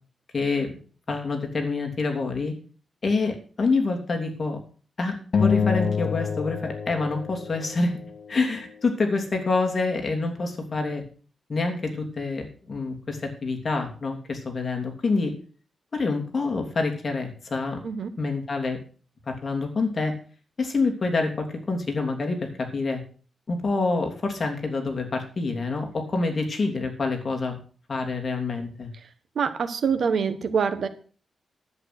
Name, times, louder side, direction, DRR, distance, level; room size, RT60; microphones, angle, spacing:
voice 1, 0.3-0.8 1.1-2.5 3.0-4.6 5.0-8.0 8.3-11.0 11.5-15.3 15.9-17.8 18.2-18.8 19.3-20.1 20.6-23.0 23.5-27.6 27.9-28.9, left 3 dB, 35° left, 2 dB, 2.9 m, -27 dB
sound 1, 5.3-8.0, left 6 dB, 55° left, 0.5 m, -26 dB
voice 2, 29.4-30.9, right 6 dB, 65° right, 9 dB, 1.3 m, -25 dB
10.5 x 8.6 x 6.0 m, 0.41 s
wide cardioid pair, 135°, 0 cm